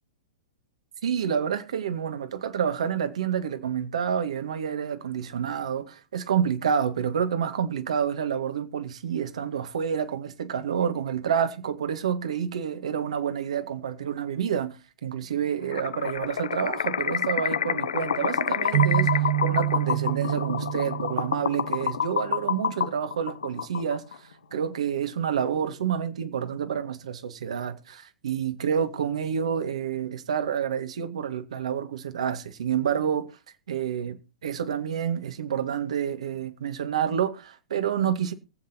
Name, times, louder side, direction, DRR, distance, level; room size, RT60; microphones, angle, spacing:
voice 1, 1.0-24.0 24.5-33.3 33.7-38.3, right 8 dB, 80° right, 2.0 m, -28 dB
sound 1, 15.7-24.2, left 7 dB, 85° left, 0.7 m, -28 dB
sound 2, 18.7-22.2, right 14 dB, 60° right, 0.9 m, -27 dB
23.5 x 8.0 x 3.0 m
hypercardioid pair, 125°, 3 cm